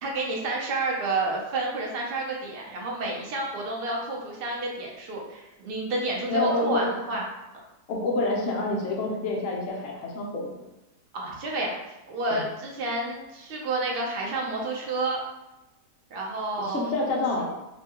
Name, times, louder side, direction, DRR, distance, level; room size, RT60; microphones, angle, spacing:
voice 1, 0.0-7.2 11.1-11.8 12.1-15.2 16.1-16.9, right 2 dB, 55° right, -1 dB, 0.7 m, -30 dB
voice 2, 6.3-6.9 7.9-10.6 12.3-12.4 16.6-17.4, left 2 dB, 60° left, -2 dB, 0.9 m, -27 dB
4.1 x 2.3 x 2.8 m, 0.97 s
omnidirectional pair, 1.7 m